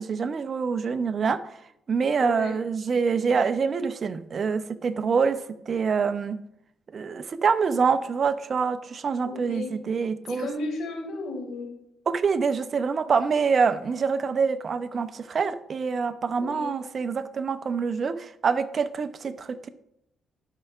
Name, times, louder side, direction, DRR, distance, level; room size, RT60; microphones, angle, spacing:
voice 1, 0.0-1.6 1.9-6.4 6.9-10.5 12.1-19.7, right 5 dB, 45° right, 12 dB, 0.5 m, -26 dB
voice 2, 2.2-2.5 9.2-9.8 10.3-11.7 16.4-16.8, left 2 dB, 80° left, 2 dB, 1.9 m, -34 dB
12.0 x 5.4 x 2.4 m, 0.77 s
cardioid pair, 90°, 0 cm